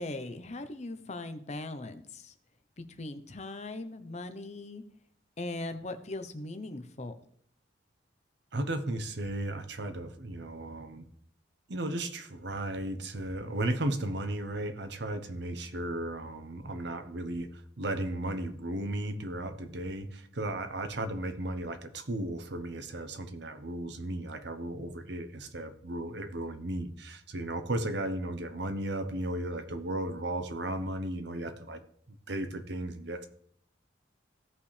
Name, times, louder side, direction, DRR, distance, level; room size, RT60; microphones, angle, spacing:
voice 1, 0.0-2.3 2.8-4.8 5.4-7.1, left 2 dB, 35° left, 9 dB, 0.7 m, -39 dB
voice 2, 8.5-11.0 11.7-31.8 32.3-33.3, right 1 dB, 60° right, 9 dB, 0.9 m, -35 dB
15.5 x 5.7 x 3.3 m, 0.65 s
head